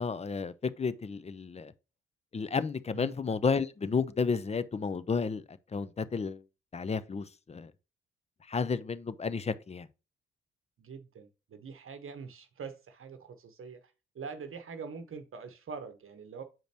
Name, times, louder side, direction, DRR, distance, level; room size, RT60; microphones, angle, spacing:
voice 1, 0.0-1.7 2.3-6.4 6.7-7.7 8.5-9.9, left 5 dB, 20° left, 0.6 m, -32 dB
voice 2, 10.8-13.8 14.1-16.4, right 5 dB, 45° right, 1.0 m, -44 dB
7.4 x 5.1 x 2.9 m
hypercardioid pair, 45°, 29 cm